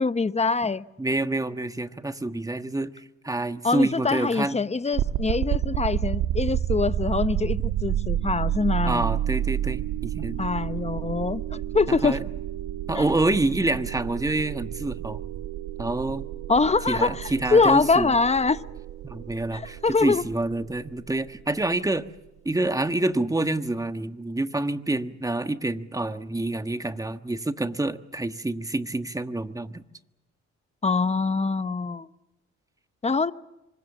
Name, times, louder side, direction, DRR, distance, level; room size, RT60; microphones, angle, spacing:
voice 1, 0.0-0.8 3.6-9.1 10.4-12.2 12.9-13.0 16.5-18.6 19.5-20.2 30.8-32.1 33.0-33.3, left 4 dB, 20° left, 0.9 m, -24 dB
voice 2, 1.0-4.6 8.8-10.5 11.9-12.2 12.9-15.2 15.8-16.3 16.9-18.1 19.0-22.1 22.4-29.8, right 2 dB, 10° right, 1.4 m, -27 dB
sound 1, 4.9-21.9, right 11 dB, 90° right, 1.5 m, -30 dB
27.5 x 24.5 x 7.3 m
cardioid pair, 90°, 30 cm